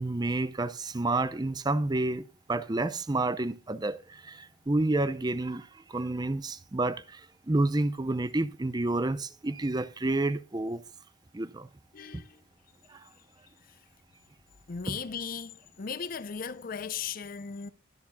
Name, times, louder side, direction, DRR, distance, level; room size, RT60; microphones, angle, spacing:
voice 1, 0.0-10.8 11.3-11.7 12.1-12.2 12.9-13.1 14.9-15.0, right 2 dB, 20° right, 0.6 m, -30 dB
voice 2, 11.9-12.4 14.7-17.7, left 6 dB, 45° left, 0.5 m, -37 dB
22.0 x 7.3 x 2.2 m
head